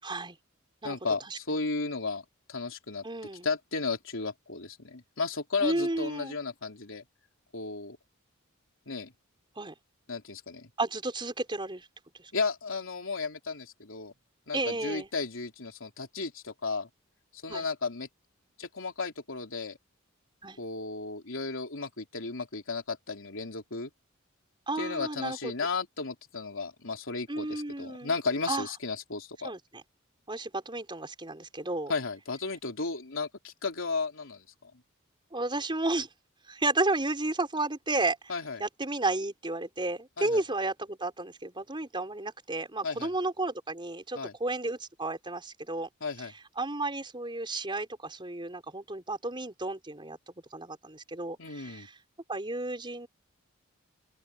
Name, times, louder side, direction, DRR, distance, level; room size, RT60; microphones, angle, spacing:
voice 1, 0.0-0.4 0.8-1.0 1.3-1.4 3.0-3.5 5.6-6.3 9.6-9.7 10.8-11.9 14.5-15.1 17.5-17.6 20.4-20.6 24.7-25.5 27.3-28.1 28.5-28.7 29.4-29.8 30.3-31.9 35.3-36.1 36.5-38.2 38.6-45.9 46.6-50.2 50.5-52.0 52.3-53.1, right 2 dB, 25° right, 4.6 m, -32 dB
voice 2, 0.8-3.0 3.4-7.0 7.5-8.0 8.9-9.1 10.1-10.7 12.3-14.1 14.5-16.9 17.4-18.1 18.6-19.8 20.6-23.9 24.8-29.5 31.9-34.7 38.3-38.6 40.2-40.4 42.8-43.1 44.2-44.3 46.0-46.3 51.4-51.9, left 4 dB, 65° left, 3.8 m, -34 dB
open air
head